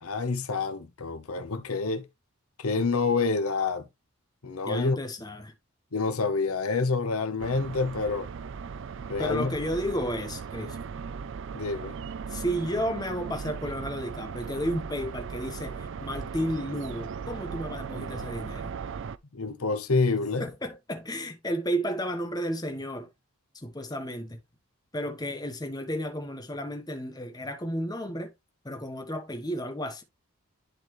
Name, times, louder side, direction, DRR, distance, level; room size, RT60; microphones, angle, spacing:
voice 1, 0.0-2.1 2.6-3.9 4.4-5.0 5.9-8.3 9.1-9.5 11.5-12.0 19.3-20.4, left 4 dB, 80° left, 0.9 m, -27 dB
voice 2, 4.6-5.5 9.2-10.8 12.3-18.7 20.4-23.1 23.6-24.4 24.9-28.3 28.6-30.0, equal, 20° left, 1.1 m, -32 dB
sound 1, 7.4-19.2, right 6 dB, 55° right, 0.4 m, -38 dB
10.5 x 4.2 x 3.1 m
head